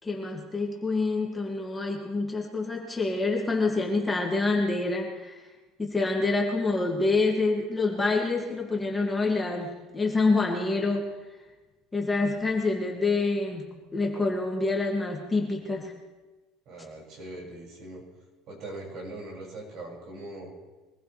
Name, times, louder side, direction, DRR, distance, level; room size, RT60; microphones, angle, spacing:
voice 1, 0.0-5.4 5.8-11.1 11.9-15.9, left 3 dB, 15° left, -1 dB, 2.5 m, -27 dB
voice 2, 16.6-18.0 18.5-20.5, right 2 dB, 55° right, -2 dB, 6.7 m, -41 dB
23.5 x 15.0 x 3.5 m, 1.2 s
supercardioid pair, 110°, 0 cm